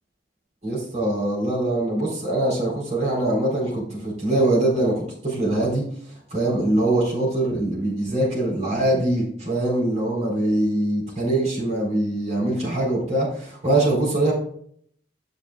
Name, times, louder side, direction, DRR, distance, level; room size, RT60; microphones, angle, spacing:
voice 1, 0.6-5.8 6.3-14.3, right 1 dB, 40° right, -5 dB, 4.1 m, -23 dB
12.5 x 7.2 x 2.4 m, 0.62 s
head